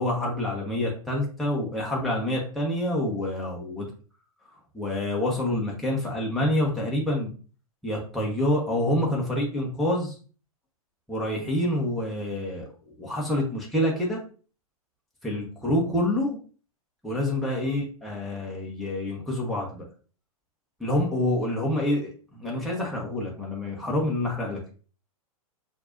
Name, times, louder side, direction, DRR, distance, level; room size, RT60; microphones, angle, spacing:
voice 1, 0.0-3.8 4.7-7.3 7.8-10.1 11.1-12.7 13.0-14.2 15.2-16.4 17.0-19.8 20.8-24.6, left 1 dB, ahead, -4 dB, 1.0 m, -27 dB
6.4 x 2.6 x 2.6 m, 0.39 s
figure-of-eight pair, 100°, 19 cm